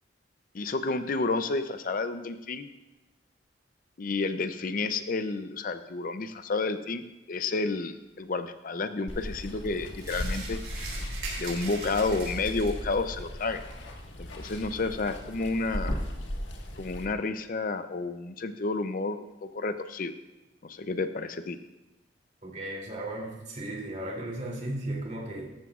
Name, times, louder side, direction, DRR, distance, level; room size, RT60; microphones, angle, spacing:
voice 1, 0.5-2.7 4.0-10.6 11.4-13.6 14.2-15.9 16.8-20.1 20.6-21.6, left 3 dB, 50° left, 10 dB, 0.5 m, -30 dB
Water, 9.1-17.0, equal, 85° left, 1.6 m, -37 dB
sound 1, 10.0-12.9, right 3 dB, 65° right, 5.1 m, -40 dB
voice 2, 22.4-25.5, right 1 dB, 40° right, -2 dB, 2.9 m, -35 dB
18.0 x 14.0 x 2.4 m, 0.98 s
head